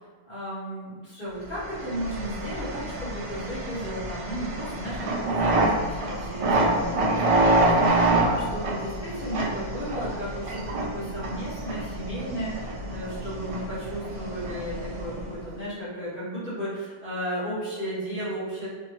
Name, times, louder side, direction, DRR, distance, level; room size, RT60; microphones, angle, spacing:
voice 1, 0.3-18.7, equal, 55° left, -11 dB, 1.7 m, -34 dB
sound 1, 1.6-15.5, right 2 dB, 45° right, 0.4 m, -27 dB
3.5 x 2.1 x 2.9 m, 1.4 s
omnidirectional pair, 1.1 m